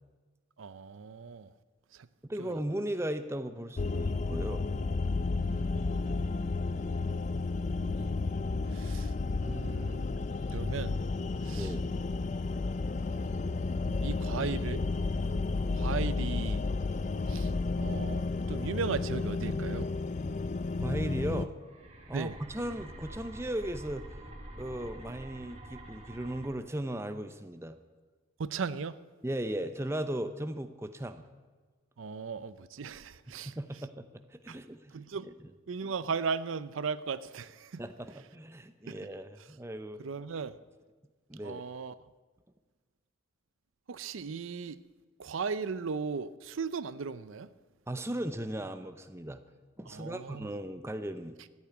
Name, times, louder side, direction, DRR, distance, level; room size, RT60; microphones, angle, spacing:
voice 1, 0.6-1.5 2.4-2.5 5.5-6.3 7.8-8.1 8.7-9.1 9.4-10.1 10.5-11.0 11.4-11.7 14.0-14.8 15.7-16.6 17.3-19.9 22.1-22.3 28.4-28.9 32.0-33.5 34.5-34.6 34.9-35.3 35.7-37.8 38.9-39.0 40.0-40.6 41.4-41.9 43.9-44.8 45.2-47.5 49.9-50.5, right 5 dB, 80° right, 15 dB, 0.5 m, -37 dB
voice 2, 2.2-4.7 11.5-12.0 20.8-21.5 22.1-24.1 24.5-27.8 29.2-31.3 33.3-35.0 35.2-35.3 37.8-40.0 41.3-41.6 47.9-49.4 49.8-51.4, right 1 dB, 15° right, 9 dB, 0.7 m, -37 dB
sound 1, 3.8-21.5, left 3 dB, 35° left, 0.4 m, -32 dB
sound 2, 21.5-26.5, right 1 dB, 35° right, 2.1 m, -47 dB
14.0 x 8.9 x 9.3 m, 1.4 s
head